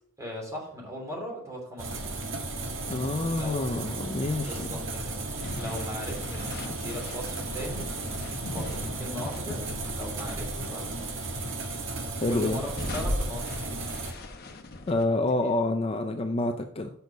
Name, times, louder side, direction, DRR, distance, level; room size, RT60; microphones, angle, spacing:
voice 1, 0.2-2.1 3.2-3.8 4.4-5.2 5.5-7.9 8.4-11.1 12.3-13.8, equal, 15° right, -2 dB, 3.0 m, -39 dB
sound 1, 1.8-14.1, right 2 dB, 65° right, 1.4 m, -35 dB
voice 2, 2.9-4.7 12.2-12.6 14.9-16.9, left 2 dB, 25° left, 6 dB, 0.5 m, -27 dB
sound 2, 5.4-10.5 10.8-11.7 12.2-15.0, left 1 dB, 50° left, 1.1 m, -38 dB
6.9 x 6.3 x 5.3 m, 0.70 s
head